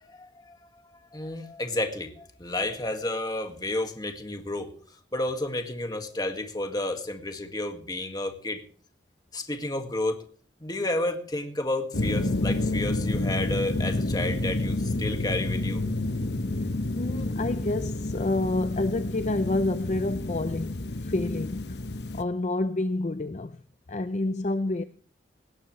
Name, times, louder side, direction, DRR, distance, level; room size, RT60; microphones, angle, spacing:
voice 1, 0.0-0.6 1.1-4.8 5.1-8.6 9.3-10.2 10.6-15.9, left 1 dB, 20° left, 1.9 m, -31 dB
sound 1, 11.9-22.2, left 2 dB, 70° left, 1.1 m, -29 dB
voice 2, 17.0-21.8 22.1-23.6 23.9-24.8, left 2 dB, 40° left, 0.6 m, -28 dB
19.0 x 18.0 x 3.2 m
head